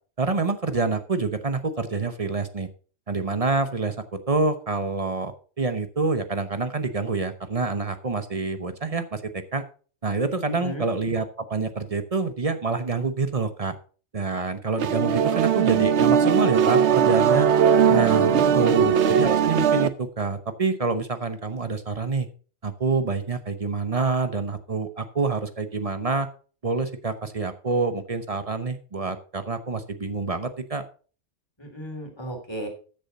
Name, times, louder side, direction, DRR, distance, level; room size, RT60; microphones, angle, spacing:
voice 1, 0.2-2.7 3.1-4.0 4.3-5.3 5.6-9.6 10.0-13.7 14.1-17.5 17.9-22.3 22.6-26.3 26.6-30.8, right 4 dB, 35° right, 10 dB, 0.9 m, -27 dB
voice 2, 10.5-10.9 18.1-18.8 31.6-32.7, right 1 dB, 20° left, 2 dB, 3.1 m, -35 dB
sound 1, 14.8-19.9, right 7 dB, 75° right, 1.0 m, -19 dB
13.5 x 7.0 x 4.0 m, 0.39 s
omnidirectional pair, 1.2 m